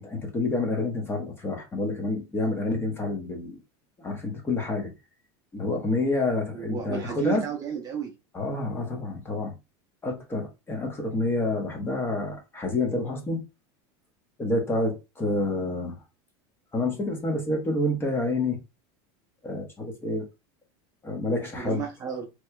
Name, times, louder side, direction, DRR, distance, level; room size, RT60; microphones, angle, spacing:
voice 1, 0.0-3.6 4.0-4.9 5.5-7.4 8.3-9.5 10.0-13.4 14.4-16.0 16.7-18.6 19.4-20.2 21.0-21.8, left 2 dB, 15° left, 1.1 m, -28 dB
voice 2, 6.5-8.1 21.3-22.3, right 8 dB, 25° right, 0.6 m, -33 dB
4.1 x 3.0 x 2.3 m
supercardioid pair, 145°, 14 cm